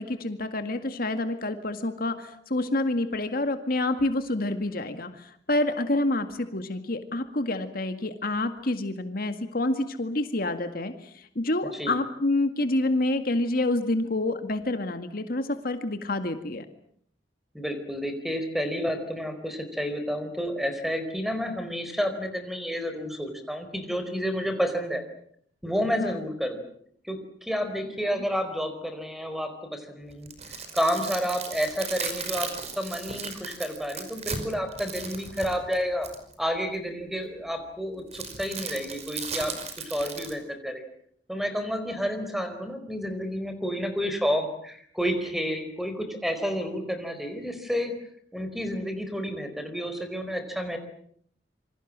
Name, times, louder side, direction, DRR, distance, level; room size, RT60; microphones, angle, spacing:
voice 1, 0.0-16.7 26.0-26.1 27.9-28.0, left 2 dB, 55° left, 8 dB, 2.0 m, -28 dB
voice 2, 11.6-11.9 17.5-25.0 25.6-26.6 27.0-30.3 30.7-36.1 36.4-39.6 39.9-40.8 41.3-47.9 48.3-50.8, equal, ahead, 8 dB, 4.5 m, -30 dB
sound 1, 30.1-36.3 38.1-40.3, right 5 dB, 40° right, 5.2 m, -36 dB
27.5 x 25.0 x 7.5 m, 0.65 s
head